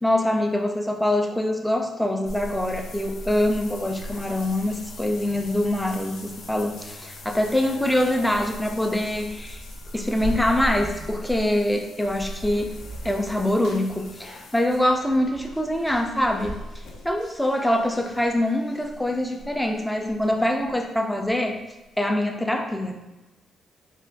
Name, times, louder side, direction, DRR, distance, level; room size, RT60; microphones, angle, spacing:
voice 1, 0.0-9.6 9.9-12.8 13.0-16.6 17.0-21.6 22.0-23.0, left 1 dB, 5° left, 3 dB, 0.3 m, -24 dB
sound 1, 2.2-20.9 21.2-21.3 21.8-21.9, left 1 dB, 70° left, 0.5 m, -39 dB
3.3 x 2.2 x 3.4 m, 1.0 s
cardioid pair, 145°, 0 cm